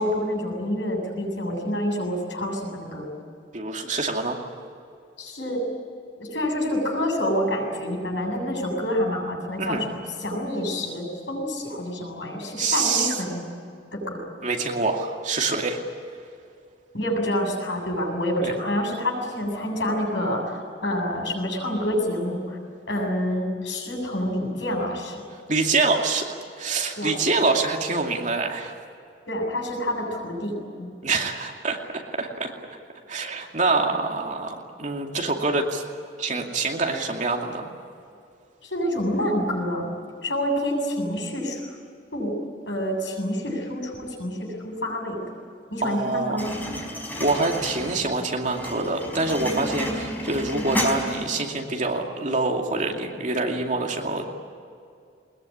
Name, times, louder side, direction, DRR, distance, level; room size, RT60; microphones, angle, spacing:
voice 1, 0.0-3.1 5.2-5.6 6.2-13.4 13.9-14.2 16.9-22.6 22.9-25.2 27.0-27.1 29.3-30.9 38.6-39.9 40.2-41.7 42.1-42.4 42.7-45.2 45.7-46.5, equal, 80° left, 1 dB, 7.6 m, -27 dB
voice 2, 3.5-4.4 9.6-9.8 12.6-13.2 14.4-15.8 18.4-18.5 25.5-28.7 31.0-32.5 33.1-35.8 36.2-37.7 45.8-46.5 47.2-54.3, right 3 dB, 45° right, 2 dB, 2.5 m, -25 dB
sound 1, 46.4-51.4, equal, 10° left, 4.5 m, -31 dB
21.5 x 21.0 x 9.9 m, 2.4 s
head